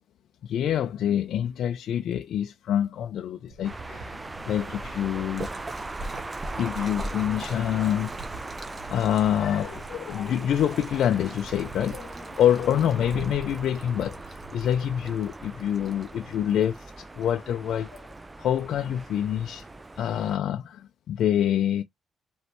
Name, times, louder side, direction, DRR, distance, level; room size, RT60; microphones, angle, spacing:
voice 1, 0.4-5.5 6.1-6.2 6.6-8.4 8.9-18.1 18.4-19.7 20.0-21.8, left 10 dB, 70° left, 0.4 m, -26 dB
sound 1, 3.5-15.1, right 4 dB, 75° right, 0.9 m, -46 dB
sound 2, 3.6-20.4, right 2 dB, 20° right, 0.3 m, -40 dB
Splash splatter, 5.3-20.3, right 2 dB, 35° right, 1.3 m, -45 dB
5.0 x 3.1 x 3.0 m
cardioid pair, 90°, 0 cm